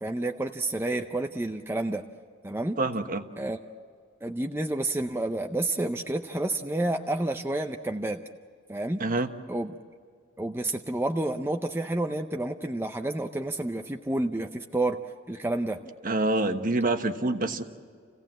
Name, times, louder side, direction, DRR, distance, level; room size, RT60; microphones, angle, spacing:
voice 1, 0.0-2.1 2.4-2.8 3.4-3.6 4.2-8.2 8.7-9.0 9.5-9.7 10.4-15.0 15.3-15.8, right 2 dB, 10° right, 5 dB, 0.6 m, -29 dB
voice 2, 2.8-3.3 9.0-9.3 16.0-17.6, right 2 dB, 45° right, 7 dB, 1.3 m, -26 dB
29.0 x 16.5 x 7.6 m, 2.1 s
head